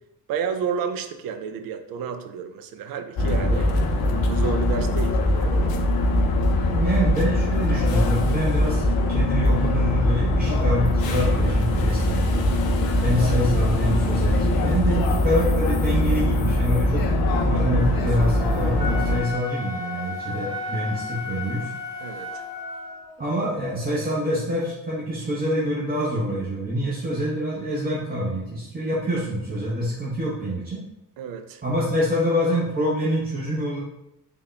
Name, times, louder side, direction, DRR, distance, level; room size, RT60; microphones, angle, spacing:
voice 1, 0.3-5.7 12.7-13.0 22.0-22.4 31.2-31.6, right 6 dB, 50° right, 8 dB, 0.5 m, -31 dB
sound 1, 3.2-19.2, left 1 dB, 50° left, 0.7 m, -22 dB
voice 2, 6.7-12.3 13.0-17.1 17.5-21.7 23.2-30.8 31.6-33.8, equal, 20° right, -6 dB, 0.8 m, -26 dB
Human voice, 11.3-11.4 11.8-15.4 17.1-24.4, right 1 dB, 75° right, 1.4 m, -43 dB
Wind instrument woodwind instrument, 18.7-23.1, left 4 dB, 90° right, 0.7 m, -34 dB
3.5 x 2.2 x 3.4 m, 0.88 s
figure-of-eight pair, 45°, 48 cm